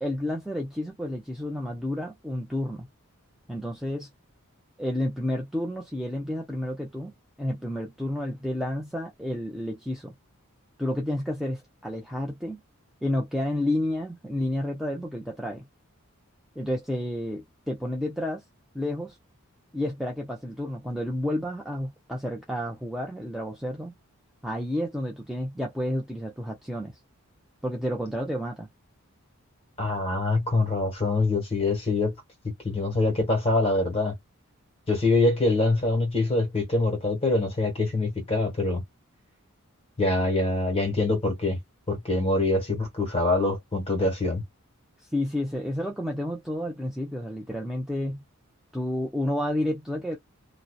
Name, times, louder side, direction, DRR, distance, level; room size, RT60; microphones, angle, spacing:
voice 1, 0.0-2.9 3.5-4.1 4.8-7.1 7.4-10.1 10.8-12.6 13.0-15.6 16.6-18.4 18.7-19.2 19.7-23.9 24.4-27.0 27.6-28.7 45.0-48.2 48.7-50.2, left 1 dB, ahead, 0.4 m, -30 dB
voice 2, 29.8-32.1 32.4-34.1 34.9-38.8 40.0-41.6 41.9-44.4, left 2 dB, 25° left, 1.3 m, -24 dB
2.7 x 2.0 x 2.2 m
head